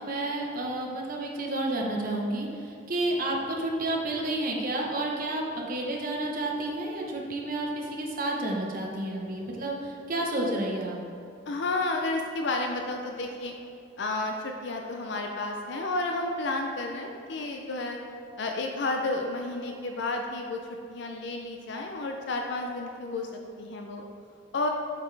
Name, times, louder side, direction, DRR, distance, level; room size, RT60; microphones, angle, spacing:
voice 1, 0.0-11.0, right 1 dB, 50° right, -1 dB, 1.0 m, -30 dB
voice 2, 11.5-13.5 14.0-18.0 18.4-20.6 20.9-23.3 23.6-24.0 24.5-24.7, left 2 dB, 65° left, 2 dB, 0.5 m, -31 dB
7.1 x 5.8 x 3.4 m, 2.5 s
head